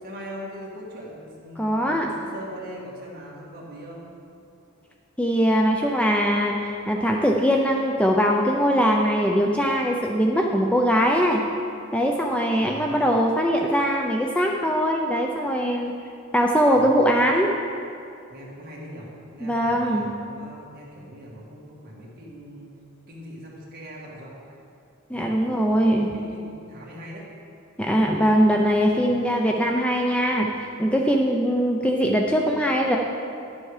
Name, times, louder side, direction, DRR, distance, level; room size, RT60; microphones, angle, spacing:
voice 1, 0.0-4.1 12.6-13.1 16.7-17.2 18.3-22.7 23.1-24.3 25.1-25.3 25.7-27.3 28.9-29.4, equal, 45° right, -4 dB, 2.1 m, -41 dB
voice 2, 1.6-2.1 5.2-6.6 6.9-11.4 11.9-15.9 16.3-17.5 19.4-20.1 25.1-26.1 27.8-30.5 30.8-33.0, equal, 5° left, 0 dB, 0.5 m, -21 dB
11.0 x 7.2 x 4.9 m, 2.5 s
head